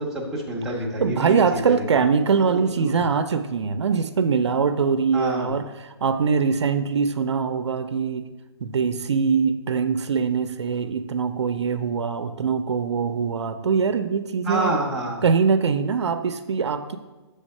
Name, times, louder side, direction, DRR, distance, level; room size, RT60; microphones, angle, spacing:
voice 1, 0.0-1.8 2.5-3.0 5.1-5.5 14.4-15.2, right 1 dB, 5° right, -5 dB, 0.7 m, -28 dB
voice 2, 1.0-8.3 8.6-14.8 15.2-17.0, right 5 dB, 85° right, 10 dB, 0.5 m, -23 dB
7.3 x 3.4 x 5.4 m, 1.2 s
hypercardioid pair, 165°, 14 cm